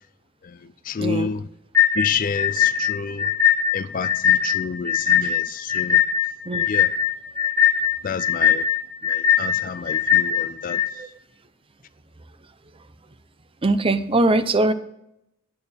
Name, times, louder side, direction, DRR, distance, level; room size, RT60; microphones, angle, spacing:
voice 1, 0.4-1.5 1.9-3.3 3.7-6.0 6.7-6.9 8.0-8.7 9.0-10.8, left 5 dB, 40° left, 0.3 m, -29 dB
voice 2, 1.0-1.3 6.5-6.7 11.0-11.1 13.6-14.7, right 2 dB, 25° right, 0.6 m, -21 dB
sound 1, 1.7-10.9, left 9 dB, 10° left, 0.7 m, -20 dB
10.5 x 8.5 x 4.3 m
head